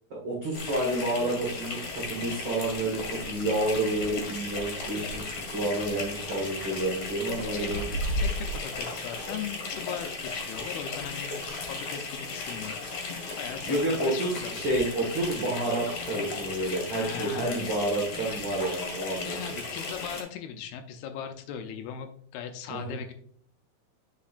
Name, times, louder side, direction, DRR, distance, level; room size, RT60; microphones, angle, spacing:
voice 1, 0.1-7.9 13.7-19.6 22.7-22.9, right 1 dB, 75° right, -4 dB, 1.0 m, -30 dB
sound 1, 0.5-20.2, left 3 dB, 50° left, 2.2 m, -35 dB
voice 2, 7.2-7.7 8.2-13.8 14.0-14.5 17.0-17.6 19.3-23.1, left 8 dB, 80° left, 7 dB, 2.4 m, -39 dB
8.4 x 5.1 x 2.4 m, 0.63 s
omnidirectional pair, 4.6 m